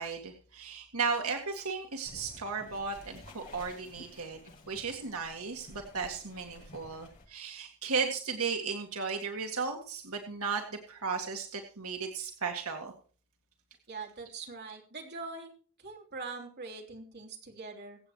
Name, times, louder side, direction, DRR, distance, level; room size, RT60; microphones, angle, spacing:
voice 1, 0.0-4.4 4.7-12.9, right 5 dB, 85° right, 3 dB, 1.9 m, -35 dB
sound 1, 2.0-7.3, left 2 dB, 40° left, 7.4 m, -52 dB
voice 2, 13.9-15.5 15.8-18.0, right 4 dB, 50° right, 0 dB, 3.5 m, -43 dB
24.0 x 8.3 x 3.1 m, 0.42 s
head